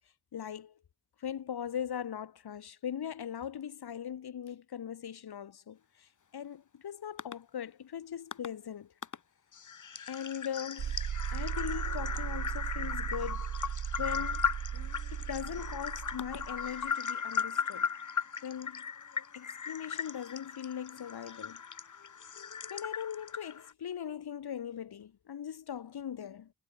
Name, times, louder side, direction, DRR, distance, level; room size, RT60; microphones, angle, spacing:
voice 1, 0.3-0.7 1.2-8.9 10.1-14.5 15.1-17.9 18.4-18.8 19.3-21.6 22.7-26.5, left 9 dB, 85° left, 3.4 m, -40 dB
sound 1, 7.2-7.3 8.3-8.5 9.0-9.2 9.5-23.7, left 6 dB, 50° left, 1.6 m, -37 dB
sound 2, 10.8-16.9, right 8 dB, 85° right, 3.8 m, -37 dB
cardioid pair, 55°, 38 cm